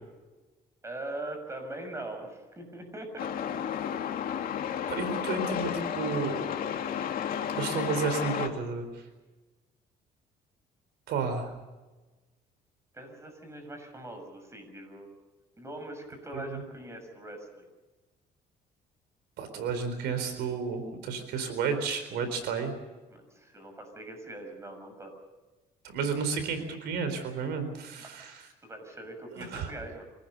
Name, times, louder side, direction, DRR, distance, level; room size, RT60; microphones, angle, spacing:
voice 1, 0.8-3.3 4.1-4.2 12.9-15.1 15.6-17.7 23.1-25.1 28.0-28.2 28.6-30.0, right 1 dB, 15° right, 6 dB, 6.8 m, -42 dB
Truck, 3.2-8.5, left 8 dB, 60° left, 2.6 m, -32 dB
voice 2, 4.9-6.4 7.6-9.0 11.1-11.5 16.3-16.6 19.4-22.7 25.8-28.4 29.3-29.7, right 5 dB, 80° right, 9 dB, 4.2 m, -32 dB
26.5 x 18.5 x 6.9 m, 1.2 s
cardioid pair, 110°, 17 cm